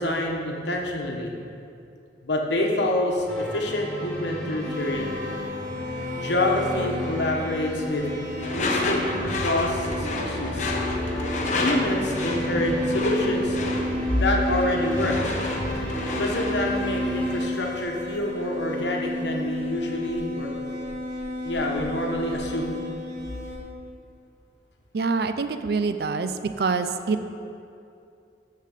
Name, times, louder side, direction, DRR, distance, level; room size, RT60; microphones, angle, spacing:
voice 1, 0.0-1.3 2.2-5.2 6.2-8.1 8.5-10.7 11.5-15.2 16.2-20.6 21.4-22.8, left 1 dB, 75° left, 0 dB, 1.2 m, -27 dB
sound 1, 3.3-18.0, equal, 5° left, 2.0 m, -34 dB
sound 2, 4.6-23.6, left 1 dB, 45° right, 2.2 m, -32 dB
Door / Screech, 8.4-16.6, left 2 dB, 40° left, 0.9 m, -30 dB
voice 2, 24.9-26.3 26.6-27.3, right 4 dB, 60° right, 10 dB, 0.4 m, -25 dB
6.8 x 6.6 x 6.6 m, 2.5 s
head